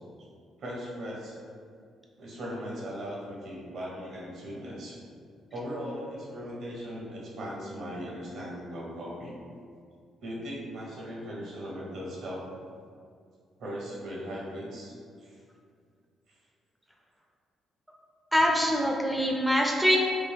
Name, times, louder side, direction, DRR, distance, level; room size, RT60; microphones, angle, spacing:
voice 1, 0.6-1.4 2.2-5.0 5.5-9.3 10.2-12.4 13.6-15.4, equal, 70° right, -4 dB, 1.1 m, -38 dB
voice 2, 18.3-20.0, equal, 5° right, 0 dB, 0.4 m, -24 dB
3.5 x 2.5 x 3.5 m, 2.2 s
cardioid pair, 90°, 0 cm